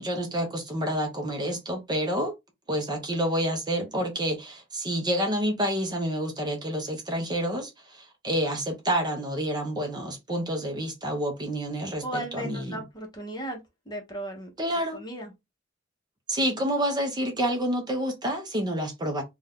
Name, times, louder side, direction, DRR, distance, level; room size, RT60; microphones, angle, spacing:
voice 1, 0.0-2.3 2.7-12.8 14.6-15.0 16.3-19.2, equal, 20° right, 0.6 m, -28 dB
voice 2, 12.0-13.6 13.9-14.5 14.9-15.3, right 1 dB, 20° left, 0.9 m, -35 dB
2.6 x 2.3 x 3.4 m
head